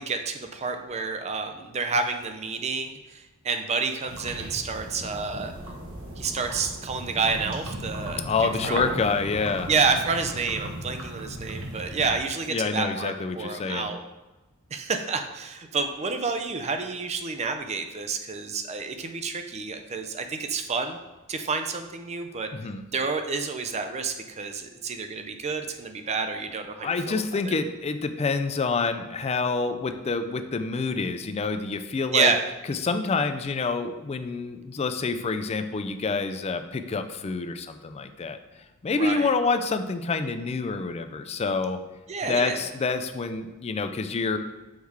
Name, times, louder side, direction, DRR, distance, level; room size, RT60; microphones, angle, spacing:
voice 1, 0.0-5.5 6.2-8.8 9.7-14.0 14.7-21.0 21.3-22.5 22.9-27.5 32.1-32.4 38.9-39.3 42.1-42.7, right 4 dB, 30° right, 6 dB, 0.4 m, -29 dB
sound 1, 4.1-12.2, right 1 dB, 65° right, 1.1 m, -37 dB
voice 2, 8.2-9.7 12.5-13.9 22.5-22.8 26.8-32.3 32.7-38.4 38.8-41.8 42.2-44.4, left 4 dB, 30° left, 9 dB, 0.4 m, -27 dB
6.4 x 4.6 x 3.5 m, 1.1 s
head